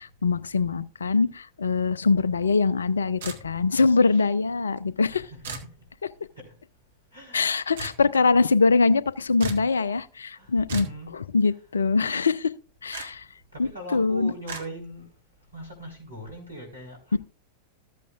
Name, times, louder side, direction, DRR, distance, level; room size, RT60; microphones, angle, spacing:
voice 1, 0.0-5.2 7.3-10.9 11.1-12.5 12.8-13.2 13.6-14.3 17.1-17.2, left 4 dB, 70° left, 0.5 m, -23 dB
sound 1, 3.2-3.8 5.4-5.7 7.8-8.0 9.4-9.7 10.7-11.0 12.9-13.1 14.5-14.6, right 4 dB, 60° right, 1.6 m, -35 dB
voice 2, 5.1-5.4 6.5-6.6 7.1-7.5 10.3-11.2 13.5-15.1 15.5-17.2, equal, 85° right, 4.4 m, -41 dB
14.0 x 8.5 x 2.5 m
figure-of-eight pair, 90°, 0 cm